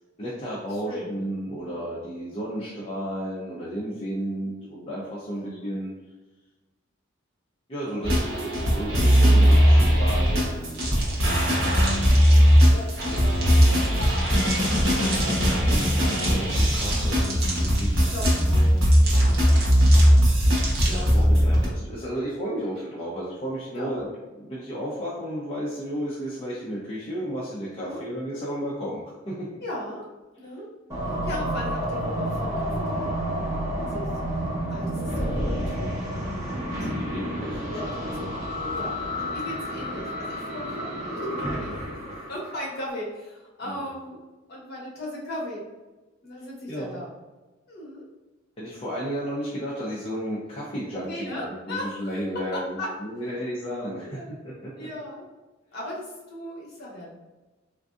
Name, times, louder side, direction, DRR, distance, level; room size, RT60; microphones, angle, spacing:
voice 1, 0.2-5.9 7.7-11.8 15.4-18.7 20.9-24.1 24.4-29.5 36.5-38.0 43.7-43.8 46.7-47.0 48.6-54.9, equal, 30° left, -6 dB, 0.5 m, -33 dB
voice 2, 0.7-1.3 4.4-4.7 5.2-5.8 12.7-14.5 15.3-16.2 18.1-18.9 20.9-21.5 23.7-24.1 27.8-28.0 29.6-30.0 30.4-30.7 31.0-36.9 37.3-38.4 38.7-41.9 42.3-44.2 44.5-45.7 46.2-47.1 47.7-48.0 51.0-52.0 52.3-52.9 54.0-54.4 54.8-55.3 55.7-57.1, left 1 dB, 50° left, -4 dB, 1.0 m, -38 dB
sound 1, 8.0-21.7, equal, 75° right, 0.9 m, -19 dB
sound 2, 10.7-21.2, right 2 dB, 50° right, 0.8 m, -36 dB
sound 3, 30.9-42.9, equal, 15° right, 1.3 m, -30 dB
3.6 x 2.6 x 2.4 m, 1.2 s
head